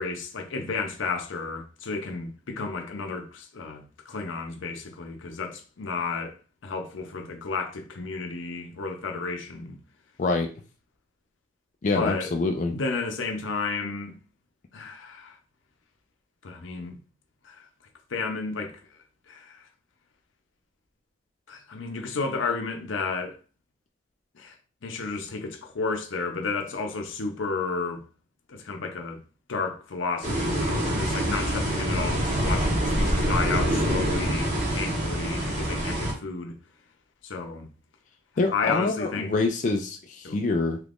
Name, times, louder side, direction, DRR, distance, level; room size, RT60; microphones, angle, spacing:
voice 1, 0.0-6.4 6.6-9.8 11.9-12.3 12.7-14.1 14.7-15.4 16.4-17.0 17.4-17.7 18.1-18.8 19.3-19.6 21.5-23.4 24.3-24.6 24.8-28.0 28.5-29.2 29.5-36.6 37.2-37.7 38.5-39.3 40.2-40.4, left 4 dB, 85° left, 0.6 m, -32 dB
voice 2, 11.8-12.7 38.4-40.8, left 3 dB, 40° left, 0.3 m, -25 dB
sound 1, 30.2-36.1, right 1 dB, 35° right, 0.9 m, -26 dB
2.9 x 2.5 x 3.5 m
head